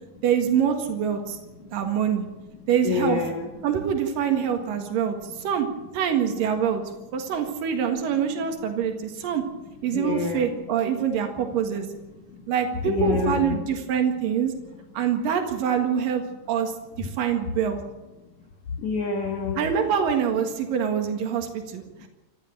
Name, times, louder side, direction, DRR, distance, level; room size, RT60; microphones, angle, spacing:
voice 1, 0.2-1.4 1.7-2.3 2.7-3.2 3.6-5.7 5.9-6.8 7.1-9.4 9.8-11.9 12.5-14.5 14.9-16.7 17.0-17.8 19.6-22.1, right 8 dB, 85° right, 4 dB, 3.5 m, -25 dB
voice 2, 2.8-3.5 9.9-10.5 12.9-13.6 18.8-19.6, left 5 dB, 60° left, 2 dB, 2.8 m, -26 dB
27.5 x 14.0 x 7.5 m, 1.0 s
omnidirectional pair, 3.9 m